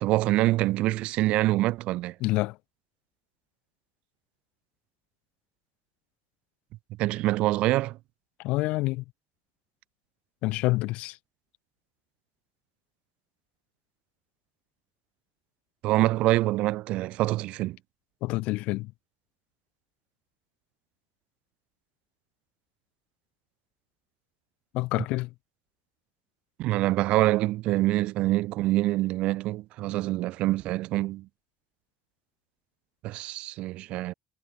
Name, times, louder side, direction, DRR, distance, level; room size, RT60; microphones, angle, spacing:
voice 1, 0.0-2.1 7.0-8.0 15.8-17.8 26.6-31.3 33.0-34.1, right 17 dB, 70° right, 0.7 m, -25 dB
voice 2, 2.2-2.6 8.4-9.0 10.4-11.2 18.2-18.9 24.7-25.3, left 21 dB, 75° left, 0.9 m, -27 dB
cardioid pair, 115°, 2 cm